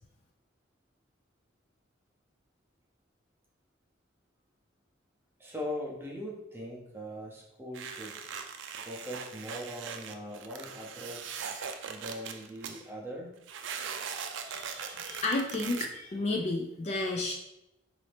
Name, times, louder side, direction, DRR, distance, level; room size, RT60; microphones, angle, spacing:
voice 1, 5.4-8.2 8.8-11.5 11.9-13.3, equal, 10° right, -3 dB, 0.7 m, -41 dB
sound 1, 7.7-12.8 13.5-15.9, right 6 dB, 65° right, 0.4 m, -40 dB
voice 2, 14.5-17.3, left 2 dB, 30° left, 1 dB, 0.3 m, -32 dB
4.0 x 2.7 x 3.3 m, 0.90 s
head